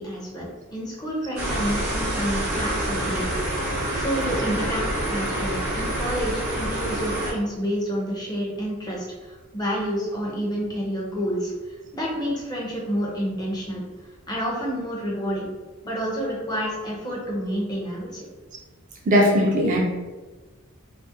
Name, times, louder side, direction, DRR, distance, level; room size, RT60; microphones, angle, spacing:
voice 1, 0.0-3.3 3.9-11.5 11.9-13.8 14.3-15.5 15.8-18.3, equal, 20° left, -4 dB, 0.5 m, -29 dB
sound 1, 1.4-7.3, right 1 dB, 80° right, 0.7 m, -27 dB
voice 2, 19.1-19.8, equal, 40° right, -2 dB, 0.4 m, -18 dB
2.4 x 2.1 x 2.6 m, 1.2 s
head